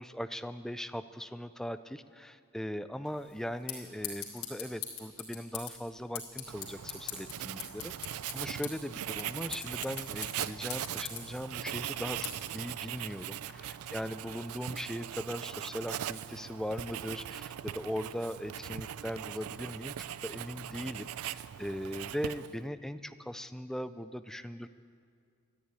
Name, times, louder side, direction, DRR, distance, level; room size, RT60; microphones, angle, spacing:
voice 1, 0.0-19.9 20.2-24.7, equal, ahead, 11 dB, 0.3 m, -39 dB
sound 1, 3.1-13.5, left 8 dB, 70° left, 3.3 m, -44 dB
Writing, 6.5-22.7, right 11 dB, 80° right, 0.4 m, -40 dB
14.0 x 10.5 x 9.6 m, 2.3 s
head